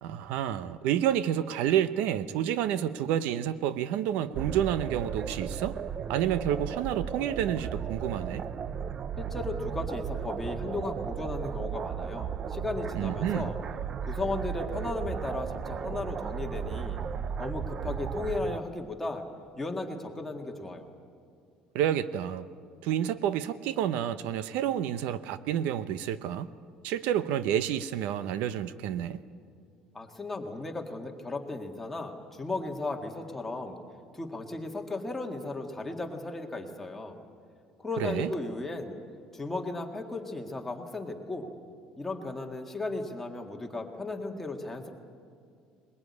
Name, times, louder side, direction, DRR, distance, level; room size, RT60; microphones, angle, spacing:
voice 1, 0.0-5.8 6.1-8.4 12.9-13.5 21.7-22.5 22.8-26.5 26.8-29.2 38.0-38.3, right 10 dB, 75° right, 14 dB, 0.8 m, -29 dB
sound 1, 4.3-18.6, right 7 dB, 30° right, 0.5 m, -35 dB
voice 2, 9.2-13.6 14.0-17.0 17.4-19.2 19.6-20.9 29.9-33.8 34.1-37.2 37.8-38.9 39.3-41.5 42.0-44.9, left 2 dB, 10° left, 2 dB, 1.8 m, -35 dB
21.5 x 21.0 x 9.7 m, 2.3 s
cardioid pair, 165°, 3 cm